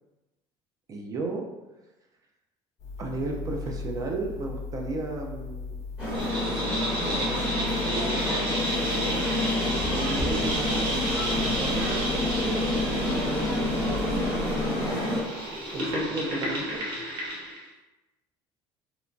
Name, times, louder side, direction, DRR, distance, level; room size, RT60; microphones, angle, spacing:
voice 1, 0.9-1.4 3.0-5.8 6.4-8.9 9.9-15.0 15.7-16.8, right 3 dB, 30° right, 1 dB, 0.4 m, -35 dB
sound 1, 2.8-16.0, left 3 dB, 30° left, 0.8 m, -37 dB
sound 2, 6.0-15.2, left 1 dB, 10° right, 1.2 m, -28 dB
sound 3, 6.1-17.6, right 1 dB, 45° right, 0.8 m, -32 dB
2.9 x 2.2 x 2.5 m, 1.0 s
cardioid pair, 140°, 11 cm